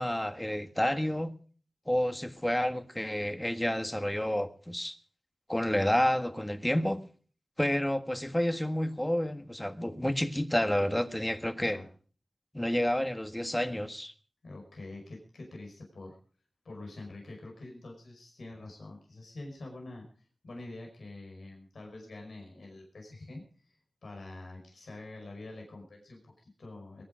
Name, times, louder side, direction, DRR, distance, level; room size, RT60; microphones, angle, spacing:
voice 1, 0.0-1.3 1.9-5.0 5.5-7.0 7.6-11.8 12.5-14.1, left 1 dB, 10° left, 9 dB, 1.5 m, -29 dB
voice 2, 14.4-16.2 16.6-20.1 20.4-27.0, left 2 dB, 85° left, 0 dB, 5.3 m, -46 dB
21.5 x 11.0 x 5.1 m, 0.42 s
cardioid pair, 50°, 0 cm